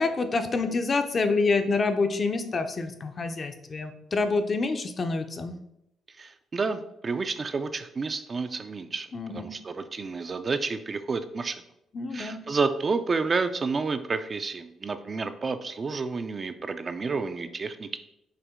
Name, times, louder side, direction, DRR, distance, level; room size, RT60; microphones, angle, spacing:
voice 1, 0.0-5.5 9.1-9.5 11.9-12.4, left 3 dB, 40° left, 7 dB, 0.5 m, -27 dB
voice 2, 6.2-11.6 12.1-18.0, right 4 dB, 35° right, 9 dB, 0.3 m, -30 dB
5.6 x 2.1 x 3.6 m, 0.79 s
cardioid pair, 90°, 0 cm